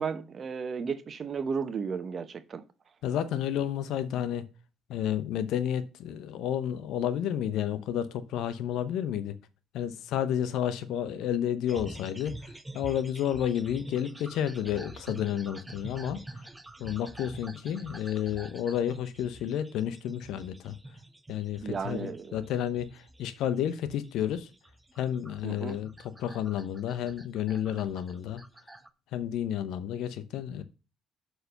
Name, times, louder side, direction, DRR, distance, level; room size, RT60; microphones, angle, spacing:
voice 1, 0.0-2.6 21.6-22.4 25.4-25.8, right 5 dB, 45° right, 0.9 m, -34 dB
voice 2, 3.0-4.5 4.9-9.4 9.7-12.3 12.7-16.2 16.8-20.8 21.3-24.5 25.0-28.4 29.1-30.6, left 10 dB, 70° left, 0.7 m, -31 dB
sound 1, 11.7-28.9, right 1 dB, 15° right, 0.7 m, -47 dB
6.6 x 4.7 x 6.5 m
hypercardioid pair, 55°, 0 cm